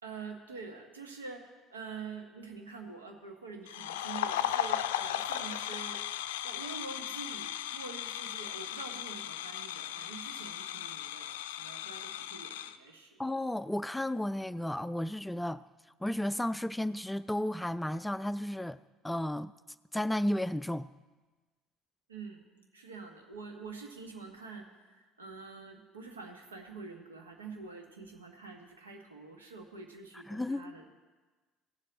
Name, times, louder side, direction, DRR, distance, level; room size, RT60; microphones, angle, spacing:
voice 1, 0.0-6.0 6.4-13.2 22.1-22.4 22.7-30.8, right 4 dB, 85° right, 1.3 m, -46 dB
sound 1, 3.7-12.8, left 11 dB, 70° left, 0.4 m, -36 dB
voice 2, 13.2-15.6 16.0-18.8 19.0-19.5 19.9-20.9 30.3-30.7, left 1 dB, 5° left, 0.3 m, -33 dB
17.0 x 7.4 x 4.0 m
figure-of-eight pair, 60°, 0 cm